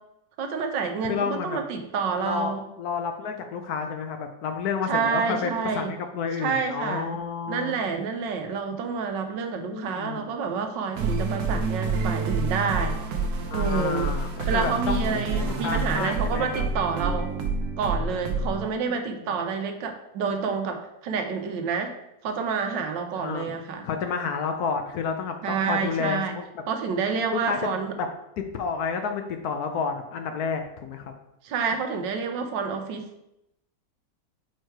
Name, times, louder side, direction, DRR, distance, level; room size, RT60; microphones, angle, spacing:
voice 1, 0.4-2.6 4.9-5.9 6.4-7.1 7.5-13.2 13.5-14.1 14.5-17.3 17.8-22.0 22.2-23.9 25.4-26.4 26.7-27.9 31.4-33.1, right 5 dB, 85° right, 5 dB, 1.4 m, -28 dB
voice 2, 1.0-1.6 2.2-7.8 9.6-10.3 13.5-16.7 18.8-18.9 19.2-19.3 23.1-23.5 23.8-26.4 27.3-27.6 28.0-28.1 28.4-31.1, left 5 dB, 70° left, 5 dB, 1.0 m, -30 dB
sound 1, 10.9-18.6, right 4 dB, 65° right, 1.2 m, -28 dB
4.7 x 4.5 x 4.6 m, 0.84 s
omnidirectional pair, 1.9 m